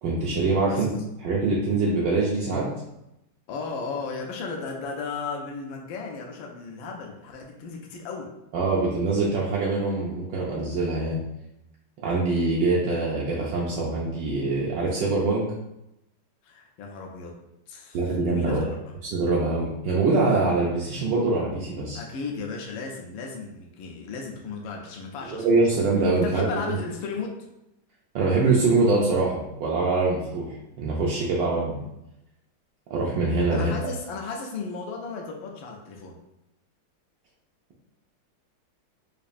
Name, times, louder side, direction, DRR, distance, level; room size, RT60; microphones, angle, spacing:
voice 1, 0.0-0.9 1.2-2.7 8.5-11.2 12.0-15.4 17.9-18.7 19.0-22.0 25.3-26.8 28.1-30.5 30.8-31.8 32.9-33.7, right 3 dB, 70° right, -5 dB, 1.2 m, -24 dB
voice 2, 3.5-8.3 16.4-17.3 17.7-19.0 21.9-25.9 26.2-27.3 33.5-36.1, left 4 dB, 75° left, 0 dB, 1.3 m, -35 dB
5.1 x 2.4 x 2.5 m, 0.87 s
omnidirectional pair, 2.3 m